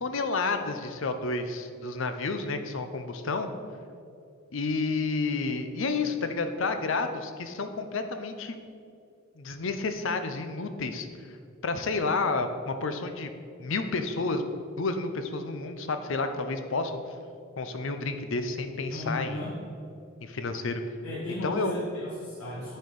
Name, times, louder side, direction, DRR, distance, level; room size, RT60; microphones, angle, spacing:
voice 1, 0.0-3.5 4.5-8.5 9.4-11.1 11.6-13.3 13.6-14.4 14.8-16.9 17.6-19.4 20.2-20.8 21.4-21.8, left 3 dB, 65° left, 8 dB, 0.6 m, -30 dB
voice 2, 18.9-19.5 21.0-22.8, left 1 dB, 80° left, -9 dB, 1.8 m, -35 dB
9.4 x 4.4 x 5.3 m, 2.4 s
head